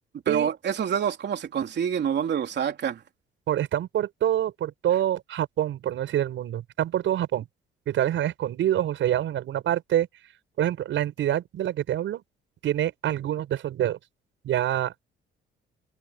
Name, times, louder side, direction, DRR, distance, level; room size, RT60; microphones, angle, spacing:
voice 1, 0.3-3.0, right 8 dB, 60° right, 3.4 m, -27 dB
voice 2, 3.5-7.4 7.9-10.1 10.6-12.2 12.6-14.0 14.4-15.0, right 11 dB, 75° right, 6.8 m, -26 dB
cardioid pair, 90°, 20 cm